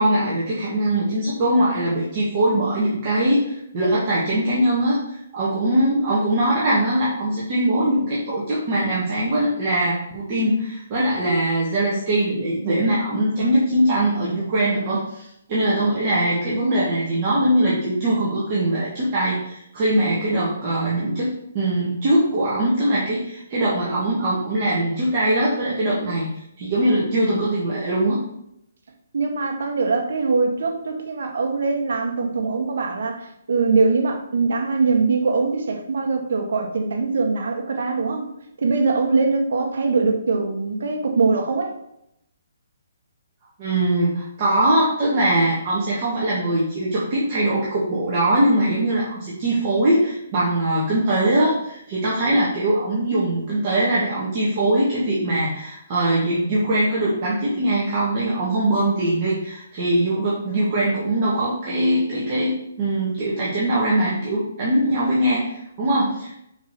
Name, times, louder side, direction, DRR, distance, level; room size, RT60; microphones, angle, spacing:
voice 1, 0.0-28.2 43.6-62.5 62.8-66.4, right 1 dB, 30° right, -7 dB, 2.0 m, -21 dB
voice 2, 29.1-38.3 38.6-41.7, right 4 dB, 65° right, 3 dB, 1.6 m, -22 dB
5.5 x 4.8 x 6.1 m, 0.79 s
hypercardioid pair, 160°, 0 cm